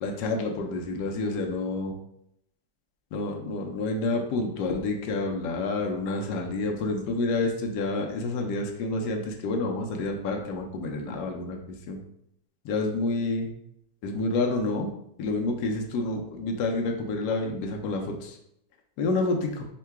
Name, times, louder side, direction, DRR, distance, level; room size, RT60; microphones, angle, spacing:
voice 1, 0.0-1.9 3.1-11.6 11.9-12.0 12.6-13.5 14.0-14.9 15.2-18.4 19.0-19.7, left 3 dB, 75° left, 2 dB, 1.2 m, -28 dB
3.7 x 2.2 x 4.5 m, 0.75 s
omnidirectional pair, 1.9 m